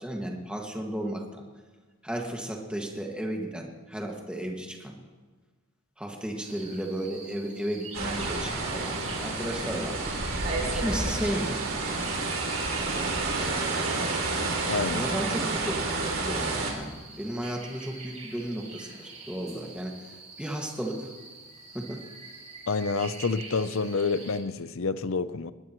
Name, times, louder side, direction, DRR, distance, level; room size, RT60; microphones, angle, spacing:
voice 1, 0.0-1.4 2.0-5.0 6.0-10.1 10.6-11.6 12.8-13.2 14.9-20.0 20.4-21.1 21.7-22.0, right 1 dB, 5° right, 1.9 m, -34 dB
sound 1, 6.4-24.4, right 3 dB, 35° right, 4.4 m, -45 dB
sound 2, 7.9-16.7, right 3 dB, 75° right, 3.0 m, -29 dB
voice 2, 14.7-15.1 22.7-25.5, left 4 dB, 70° left, 0.7 m, -28 dB
21.0 x 20.0 x 3.1 m
head